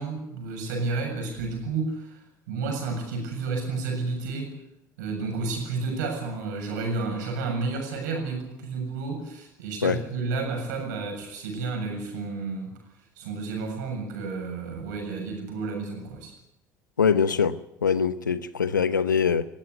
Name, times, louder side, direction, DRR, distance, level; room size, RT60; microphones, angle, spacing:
voice 1, 0.0-4.6 5.0-12.8 13.2-16.3, right 3 dB, 70° right, 7.3 m, -31 dB
voice 2, 17.0-17.6 17.8-19.5, left 6 dB, 85° left, 0.9 m, -23 dB
21.0 x 16.0 x 9.4 m
figure-of-eight pair, 60°, 10 cm